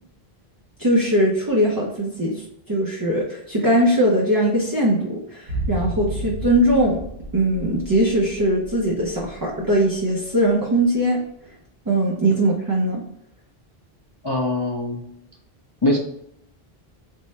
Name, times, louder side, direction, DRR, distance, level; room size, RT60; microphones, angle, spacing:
voice 1, 0.8-7.0 7.3-11.2 11.9-13.0, right 1 dB, 30° right, -3 dB, 0.4 m, -20 dB
sound 1, 5.5-9.7 10.0-10.1, right 1 dB, 90° right, 1.2 m, -32 dB
voice 2, 14.2-15.0 15.8-16.0, left 1 dB, 40° left, -2 dB, 0.3 m, -22 dB
3.6 x 2.0 x 4.1 m, 0.76 s
omnidirectional pair, 1.0 m